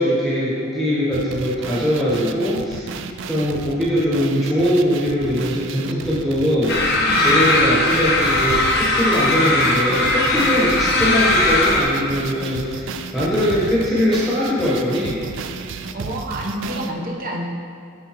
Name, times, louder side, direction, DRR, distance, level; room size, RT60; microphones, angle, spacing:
voice 1, 0.0-2.8 3.3-6.9 7.2-12.9 13.1-15.2, equal, ahead, -8 dB, 1.1 m, -21 dB
sound 1, 1.1-16.9, right 5 dB, 55° right, 0.3 m, -33 dB
sound 2, 6.7-11.8, left 2 dB, 50° left, 0.9 m, -18 dB
voice 2, 6.9-7.4 15.9-17.5, right 1 dB, 40° right, -1 dB, 0.9 m, -28 dB
13.0 x 4.7 x 3.0 m, 2.4 s
head